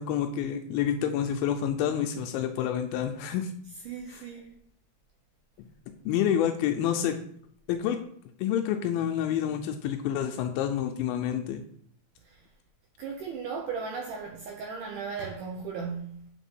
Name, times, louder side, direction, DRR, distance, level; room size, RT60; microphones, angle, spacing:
voice 1, 0.0-3.5 4.1-4.2 6.1-7.2 7.7-8.0 8.4-11.6, left 9 dB, 85° left, 2.4 m, -28 dB
voice 2, 3.8-4.6 12.2-12.4 13.0-16.3, right 5 dB, 75° right, 2.1 m, -36 dB
7.8 x 4.1 x 5.3 m
omnidirectional pair, 4.2 m